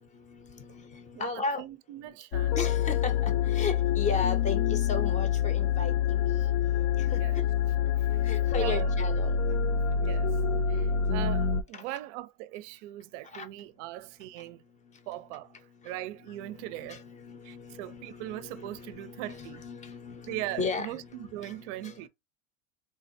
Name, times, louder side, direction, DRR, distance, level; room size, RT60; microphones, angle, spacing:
voice 1, 0.3-1.6 2.6-6.5 7.1-7.2 8.2-9.3 13.3-13.5 16.4-20.9 21.1-21.9, left 4 dB, 20° left, 0.6 m, -36 dB
voice 2, 1.1-2.8 7.1-7.4 8.6-8.9 9.9-10.4 10.7-14.6 15.1-15.6 15.8-17.0 17.4-19.6 20.3-22.1, right 15 dB, 60° right, 0.5 m, -40 dB
sound 1, 2.3-11.6, left 7 dB, 70° left, 0.6 m, -26 dB
3.7 x 2.1 x 2.6 m
supercardioid pair, 125°, 41 cm